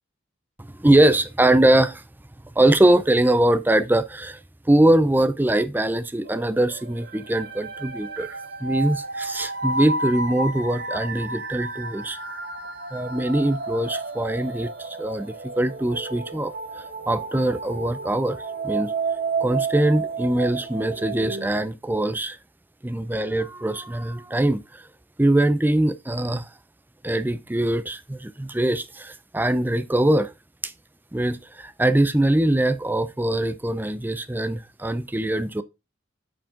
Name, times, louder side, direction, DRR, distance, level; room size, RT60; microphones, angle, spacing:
voice 1, 0.6-2.0 2.6-4.4 4.7-12.2 12.9-18.9 19.4-22.4 22.8-24.8 25.2-26.5 27.0-30.3 30.6-30.7 31.1-35.6, right 1 dB, 10° right, 0.4 m, -22 dB
sound 1, 6.2-21.5, right 3 dB, 50° right, 1.1 m, -31 dB
8.8 x 5.2 x 3.7 m
head